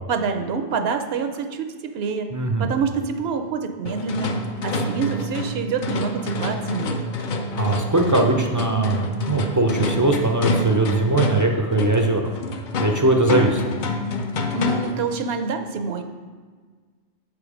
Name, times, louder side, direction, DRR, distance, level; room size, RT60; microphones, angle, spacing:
voice 1, 0.1-2.3 2.6-4.3 4.6-7.1 14.5-16.0, right 5 dB, 75° right, 7 dB, 0.9 m, -26 dB
voice 2, 2.3-2.7 7.6-12.2 12.8-13.6, right 2 dB, 25° right, 3 dB, 0.4 m, -20 dB
sound 1, 3.8-15.1, left 1 dB, 55° left, 0.7 m, -27 dB
7.4 x 5.0 x 4.9 m, 1.5 s
omnidirectional pair, 1.1 m